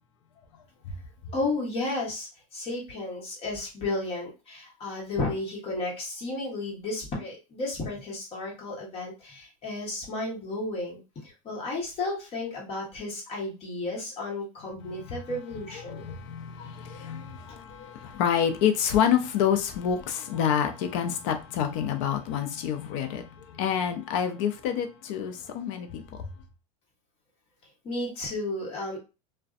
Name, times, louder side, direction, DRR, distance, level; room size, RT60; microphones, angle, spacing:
voice 1, 1.3-16.0 27.8-29.0, left 2 dB, 35° left, 1.2 m, -33 dB
voice 2, 15.8-23.2 23.5-26.0, left 8 dB, 60° left, 0.6 m, -27 dB
2.5 x 2.2 x 2.4 m
supercardioid pair, 130°, 18 cm